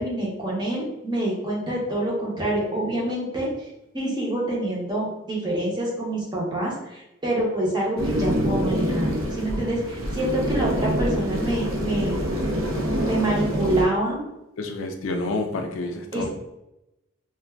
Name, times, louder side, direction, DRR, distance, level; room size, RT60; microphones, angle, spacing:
voice 1, 0.0-3.7 3.9-12.2 13.0-14.2 16.1-16.2, right 1 dB, 20° right, -4 dB, 0.7 m, -26 dB
sound 1, 8.0-13.8, equal, 75° right, 0.6 m, -26 dB
voice 2, 14.6-16.3, left 2 dB, 70° left, 4 dB, 0.4 m, -29 dB
2.5 x 2.2 x 3.3 m, 0.92 s
head